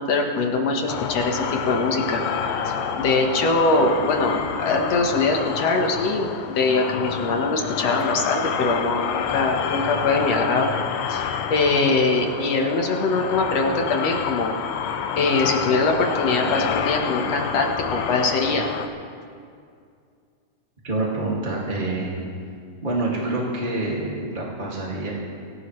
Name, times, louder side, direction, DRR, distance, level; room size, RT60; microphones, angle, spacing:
voice 1, 0.0-2.2 2.6-10.7 11.1-14.5 15.2-18.7, left 3 dB, 60° left, 1 dB, 2.1 m, -22 dB
sound 1, 0.9-18.9, left 7 dB, 85° left, 2.4 m, -28 dB
voice 2, 20.8-22.1 22.8-25.1, right 2 dB, 20° right, -5 dB, 1.8 m, -26 dB
25.0 x 15.5 x 3.2 m, 2.3 s
omnidirectional pair, 3.8 m